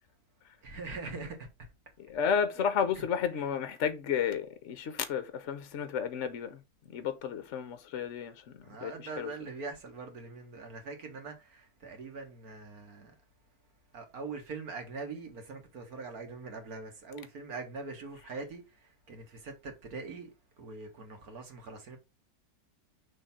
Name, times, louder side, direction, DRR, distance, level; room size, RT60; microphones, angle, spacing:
voice 1, 0.6-1.5 3.0-3.1 3.3-3.5 8.6-13.1 13.9-20.3 20.6-22.0, right 4 dB, 60° right, 1.9 m, -43 dB
voice 2, 2.0-6.6 6.9-9.3, left 7 dB, 60° left, 0.8 m, -32 dB
6.3 x 3.4 x 5.7 m
omnidirectional pair, 1.9 m